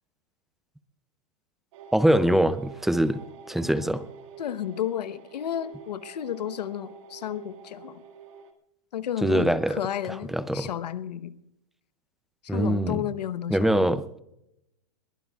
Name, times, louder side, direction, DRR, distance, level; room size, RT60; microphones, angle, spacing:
sound 1, 1.7-8.5, right 6 dB, 50° right, 2.0 m, -47 dB
voice 1, 1.9-3.2 3.5-4.0 9.2-9.8 10.1-10.7 12.5-13.1 13.5-14.0, right 1 dB, ahead, 14 dB, 0.4 m, -23 dB
voice 2, 4.4-8.0 8.9-11.3 12.4-13.7, left 10 dB, 85° left, 13 dB, 1.0 m, -32 dB
21.5 x 19.5 x 2.4 m, 0.81 s
hypercardioid pair, 145°, 21 cm